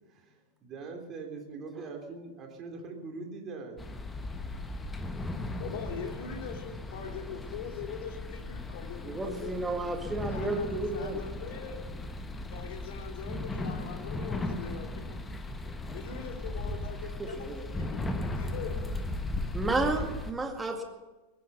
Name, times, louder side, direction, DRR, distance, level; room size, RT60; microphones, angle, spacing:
voice 1, 0.1-3.8, right 4 dB, 30° right, 2 dB, 3.2 m, -42 dB
sound 1, 3.8-20.3, left 2 dB, 15° left, 1.2 m, -37 dB
voice 2, 5.6-9.5 10.3-11.8 12.5-15.2 15.9-18.8, left 7 dB, 50° left, 4 dB, 2.5 m, -42 dB
voice 3, 9.0-11.2 17.2-17.6 19.5-20.8, right 2 dB, 10° right, 4 dB, 2.0 m, -32 dB
21.5 x 9.6 x 6.8 m, 1.1 s
figure-of-eight pair, 90°, 0 cm